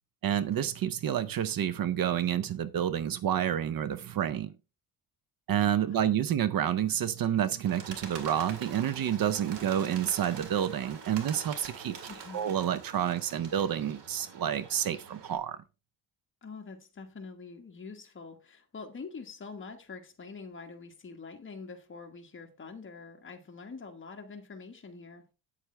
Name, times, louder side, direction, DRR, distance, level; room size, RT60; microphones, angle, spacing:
voice 1, 0.2-4.5 5.5-11.9 12.3-15.6, right 10 dB, 55° right, 0.7 m, -29 dB
voice 2, 5.9-6.2 12.1-12.5 16.4-25.3, left 4 dB, 30° left, 1.4 m, -45 dB
Bird, 7.6-15.4, right 6 dB, 80° right, 2.1 m, -45 dB
8.8 x 8.1 x 3.3 m
cardioid pair, 135°, 41 cm